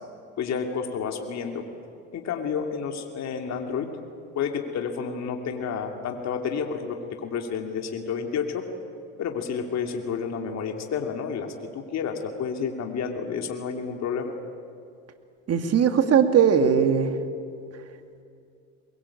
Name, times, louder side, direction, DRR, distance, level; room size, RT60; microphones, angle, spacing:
voice 1, 0.4-1.6 2.1-3.9 4.3-8.6 9.2-14.3, left 6 dB, 55° left, 4 dB, 2.8 m, -30 dB
voice 2, 15.5-17.1, right 7 dB, 50° right, 7 dB, 2.5 m, -19 dB
22.5 x 22.5 x 8.6 m, 2.4 s
supercardioid pair, 80°, 33 cm